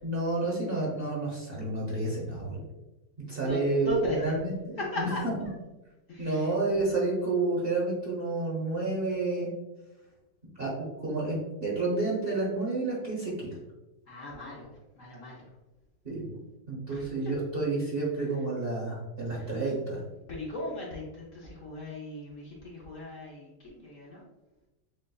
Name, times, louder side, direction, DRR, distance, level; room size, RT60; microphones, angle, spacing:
voice 1, 0.0-2.6 3.2-4.5 5.0-5.1 6.2-9.5 10.6-13.5 16.0-16.3 16.7-20.0, right 2 dB, 40° right, -5 dB, 1.1 m, -30 dB
voice 2, 3.4-4.4 4.8-5.5 6.1-6.5 14.1-15.5 16.9-17.1 19.3-19.5 20.3-24.2, left 1 dB, 55° left, -5 dB, 1.0 m, -37 dB
7.4 x 2.5 x 2.3 m, 1.0 s
omnidirectional pair, 1.9 m